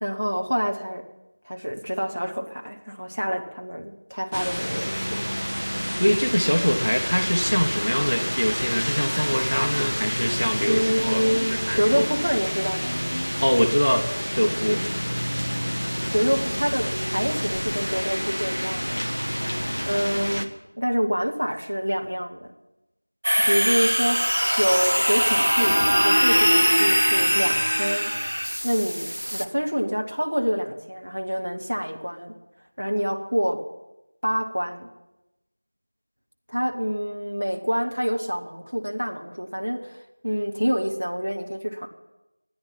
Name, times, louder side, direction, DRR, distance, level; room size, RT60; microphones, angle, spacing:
voice 1, 0.0-1.0 1.4-5.3 10.7-13.0 16.1-19.0 19.9-22.5 23.4-28.1 28.6-32.3 32.8-33.6 34.2-34.9 36.5-41.9, equal, 25° right, 2 dB, 0.9 m, -27 dB
sound 1, 4.3-20.5, equal, 90° right, 1.5 m, -29 dB
voice 2, 6.0-11.2 11.5-12.1 13.4-14.9, equal, 30° left, 5 dB, 0.7 m, -23 dB
sound 2, 23.2-29.5, equal, 45° right, 0.6 m, -21 dB
13.0 x 9.8 x 7.3 m, 0.97 s
figure-of-eight pair, 180°, 0 cm